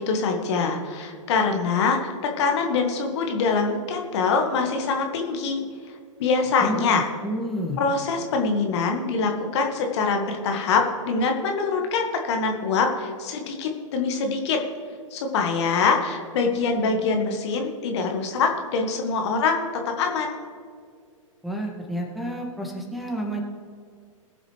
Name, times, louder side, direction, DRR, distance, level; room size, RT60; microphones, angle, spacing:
voice 1, 0.0-5.6 6.2-7.0 7.8-14.6 15.1-19.6 20.0-20.4, left 4 dB, 55° left, 3 dB, 1.8 m, -24 dB
voice 2, 7.2-7.8 21.4-23.4, equal, ahead, -2 dB, 2.2 m, -30 dB
21.0 x 7.5 x 3.3 m, 2.2 s
figure-of-eight pair, 110°, 17 cm